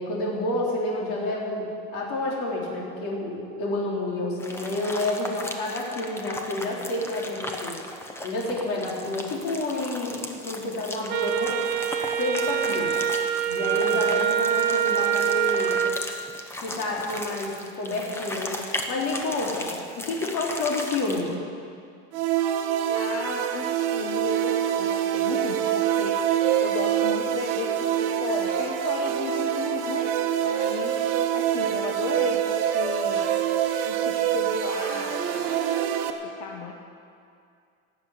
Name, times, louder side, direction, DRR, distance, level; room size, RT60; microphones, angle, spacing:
voice 1, 0.0-7.8 8.2-11.6 12.2-12.9 13.5-15.8 16.6-19.7 20.0-21.3, left 2 dB, 50° left, -3 dB, 3.8 m, -29 dB
sound 1, 4.4-21.3, left 1 dB, 10° left, 0.8 m, -37 dB
Wind instrument woodwind instrument, 11.1-16.0, right 9 dB, 30° right, 0.9 m, -25 dB
sound 2, 22.1-36.1, right 10 dB, 60° right, 1.3 m, -25 dB
voice 2, 22.9-30.1 30.4-31.0 31.3-33.3 33.8-35.7 36.0-36.7, left 6 dB, 80° left, 1 dB, 1.3 m, -35 dB
17.0 x 7.2 x 9.4 m, 2.4 s
cardioid pair, 170°, 30 cm